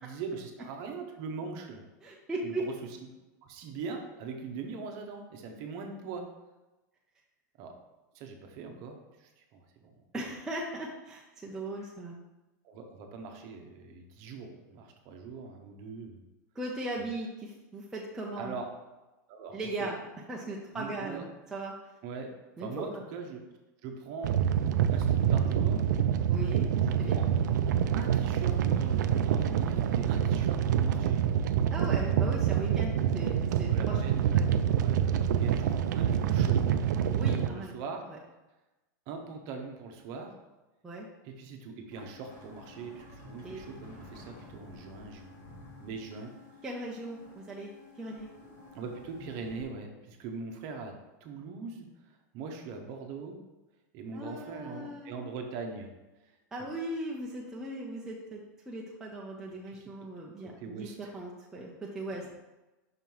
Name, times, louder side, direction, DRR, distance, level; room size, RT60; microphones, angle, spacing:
voice 1, 0.0-1.8 2.4-2.7 3.4-6.2 7.6-7.7 8.1-9.9 12.6-16.2 18.4-18.7 19.3-19.9 20.7-21.2 22.0-22.3 22.6-23.4 23.8-24.4 24.9-25.8 26.8-27.2 27.9-31.2 32.0-32.3 33.7-35.0 35.4-36.7 37.5-38.0 39.1-40.3 41.2-46.3 48.7-50.9 51.2-53.4 53.9-55.9 56.3-56.7 59.7-59.8 60.4-60.9 62.2-62.3, right 4 dB, 35° right, 3 dB, 0.8 m, -41 dB
voice 2, 2.0-2.7 10.1-12.2 16.5-18.6 19.5-20.0 20.3-21.8 22.6-22.9 26.3-26.7 27.0-27.2 31.7-34.0 34.3-34.5 37.1-37.7 38.1-38.2 40.8-41.1 43.4-43.6 46.6-47.7 48.0-48.3 54.1-55.3 56.5-62.3, right 1 dB, 5° right, -3 dB, 0.4 m, -38 dB
sound 1, 24.2-37.5, right 9 dB, 75° right, 0.4 m, -26 dB
sound 2, 41.9-49.6, left 2 dB, 40° left, 1.6 m, -51 dB
5.7 x 3.0 x 5.4 m, 1.1 s
supercardioid pair, 165°, 10 cm